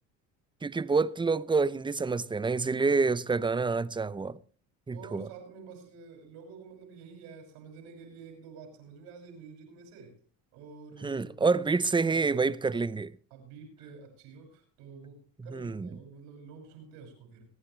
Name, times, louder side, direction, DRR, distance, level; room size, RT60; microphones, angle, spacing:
voice 1, 0.6-4.4 4.9-5.3 11.0-13.1 15.5-15.9, right 4 dB, 10° right, 0.6 m, -27 dB
voice 2, 4.9-10.2 10.5-12.5 13.3-17.5, right 5 dB, 85° right, 6.0 m, -49 dB
25.5 x 9.5 x 3.3 m
supercardioid pair, 90°, 40 cm